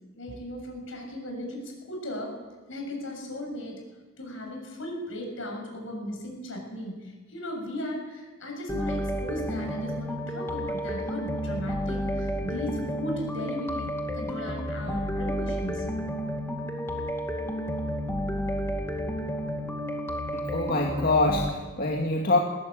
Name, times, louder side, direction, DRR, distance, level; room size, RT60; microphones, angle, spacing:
voice 1, 0.2-2.4 2.7-3.8 4.2-15.9, equal, 75° left, 2 dB, 7.1 m, -36 dB
sound 1, 8.7-21.5, equal, 15° left, 2.4 m, -31 dB
voice 2, 20.3-22.4, left 2 dB, 50° left, 0 dB, 2.2 m, -25 dB
20.5 x 17.0 x 8.7 m, 1.3 s
head